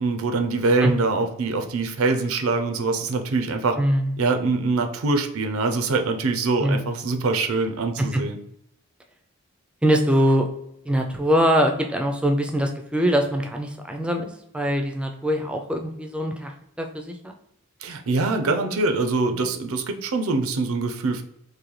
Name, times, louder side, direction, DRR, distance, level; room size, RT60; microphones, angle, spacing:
voice 1, 0.0-3.8 4.2-8.4 17.8-21.2, right 3 dB, 80° right, 6 dB, 0.6 m, -24 dB
voice 2, 3.8-4.1 6.6-6.8 8.0-8.2 9.8-10.5 10.9-17.3, equal, 5° right, 3 dB, 0.4 m, -23 dB
3.8 x 2.7 x 3.2 m, 0.77 s
head